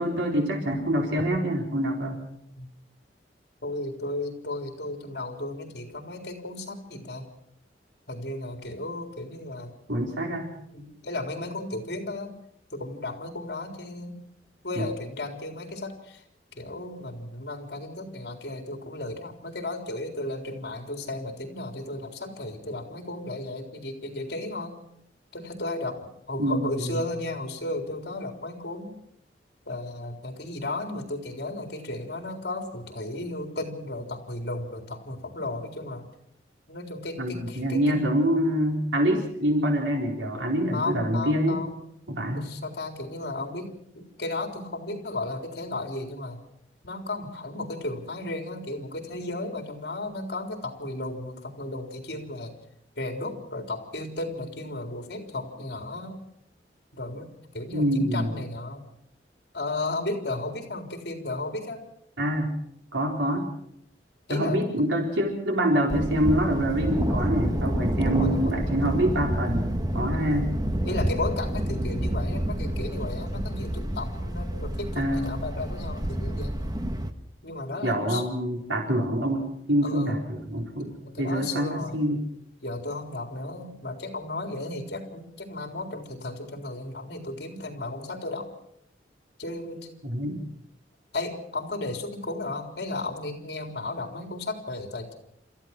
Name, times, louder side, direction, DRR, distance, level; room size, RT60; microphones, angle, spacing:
voice 1, 0.0-2.2 9.9-10.5 14.8-14.9 26.4-27.0 37.2-41.6 42.1-42.5 57.7-58.3 62.2-62.5 62.9-63.5 64.3-70.5 74.9-75.3 77.8-80.9 81.2-82.2 90.0-90.4, equal, 90° right, 1 dB, 4.3 m, -26 dB
voice 2, 3.6-7.3 8.1-9.7 10.7-12.3 12.7-14.2 14.6-16.2 16.6-24.7 25.3-26.0 26.3-28.9 29.7-36.1 36.7-38.0 40.7-41.9 42.4-46.4 46.8-52.5 53.0-56.2 56.9-58.8 59.5-61.8 64.3-64.6 67.9-68.5 70.8-76.6 77.4-78.2 79.8-80.1 80.8-82.0 82.6-88.5 89.4-89.9 90.2-90.3 91.1-95.1, left 2 dB, 60° left, 4 dB, 3.9 m, -34 dB
Thunder, 65.9-77.1, equal, 20° right, 1.3 m, -28 dB
29.5 x 14.5 x 6.0 m, 0.72 s
head